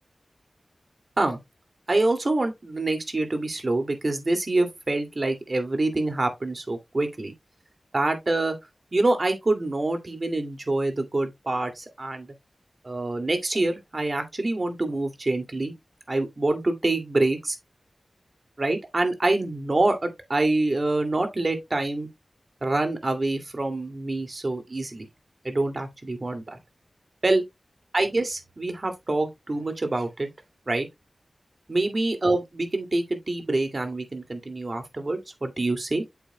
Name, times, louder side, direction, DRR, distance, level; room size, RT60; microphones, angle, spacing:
voice 1, 1.9-7.3 7.9-8.6 8.9-12.3 12.8-15.7 16.1-17.6 18.6-22.1 22.6-25.1 25.4-26.6 27.2-27.4 27.9-30.3 30.7-30.9 31.7-36.0, right 2 dB, 50° right, 2.4 m, -26 dB
8.6 x 7.1 x 2.2 m
cardioid pair, 40°, 0 cm